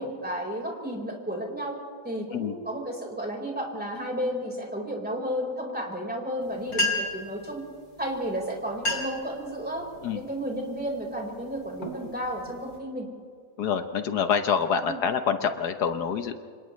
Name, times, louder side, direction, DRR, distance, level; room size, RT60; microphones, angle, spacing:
voice 1, 0.0-1.8 2.0-7.6 8.0-9.8 10.1-13.1 14.8-15.0, equal, 5° right, -1 dB, 4.4 m, -32 dB
sound 1, 6.4-6.5 6.7-7.3 8.2-8.3 8.7-9.3 9.8-10.1 10.7-11.0 11.5-12.8, left 2 dB, 60° left, 3.6 m, -30 dB
voice 2, 13.6-16.4, left 7 dB, 80° left, 8 dB, 1.6 m, -26 dB
29.5 x 27.5 x 3.2 m, 2.1 s
omnidirectional pair, 1.7 m